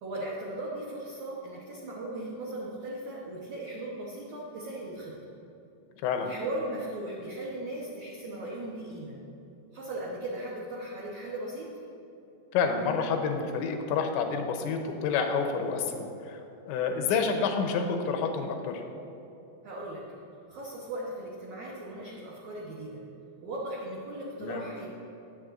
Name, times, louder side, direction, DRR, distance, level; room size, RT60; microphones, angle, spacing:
voice 1, 0.0-5.2 6.2-9.2 9.7-11.7 19.6-20.1 20.5-23.0 23.4-24.9, right 1 dB, 85° right, -5 dB, 1.6 m, -37 dB
voice 2, 12.5-16.4 16.7-18.8 24.4-24.6, left 5 dB, 90° left, 5 dB, 3.1 m, -29 dB
19.5 x 7.5 x 2.6 m, 2.9 s
omnidirectional pair, 5.2 m